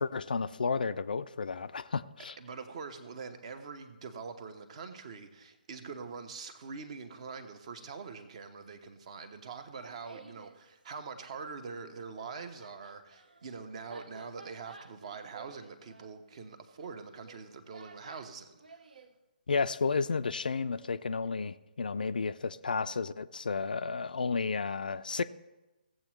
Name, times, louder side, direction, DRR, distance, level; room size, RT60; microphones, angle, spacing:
voice 1, 0.0-2.4 19.5-25.2, left 4 dB, 60° left, 12 dB, 0.4 m, -32 dB
voice 2, 2.4-18.8, right 5 dB, 40° right, 9 dB, 1.1 m, -44 dB
Laughter, 9.5-10.6 11.8-19.1, right 4 dB, 60° right, 0.8 m, -54 dB
16.5 x 7.6 x 3.1 m, 1.0 s
figure-of-eight pair, 135°, 5 cm